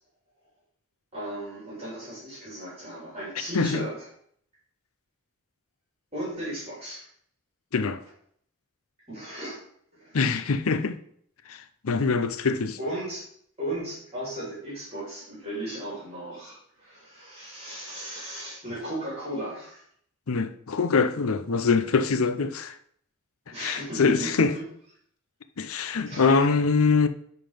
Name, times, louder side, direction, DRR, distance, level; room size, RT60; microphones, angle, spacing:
voice 1, 1.1-4.1 6.1-7.1 9.1-9.6 9.9-10.2 12.8-13.2 13.6-19.8 23.5-24.6 26.1-26.3, right 1 dB, 30° right, 3.6 m, -36 dB
voice 2, 10.1-11.0 11.5-12.8 20.3-22.8 23.6-24.5 25.6-27.1, left 4 dB, 75° left, 0.6 m, -24 dB
10.5 x 4.0 x 5.1 m
head